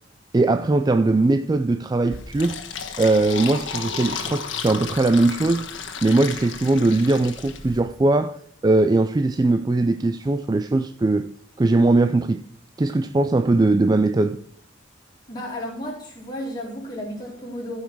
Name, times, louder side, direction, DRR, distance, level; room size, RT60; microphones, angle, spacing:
voice 1, 0.3-2.6 3.0-5.7 6.0-8.4 8.6-11.3 11.6-12.4 12.8-14.4, right 2 dB, 20° right, 0.3 m, -20 dB
Fill (with liquid), 2.1-7.8, left 6 dB, 80° left, 1.4 m, -33 dB
voice 2, 15.3-17.8, equal, 20° left, 4.0 m, -33 dB
14.5 x 5.6 x 4.6 m
head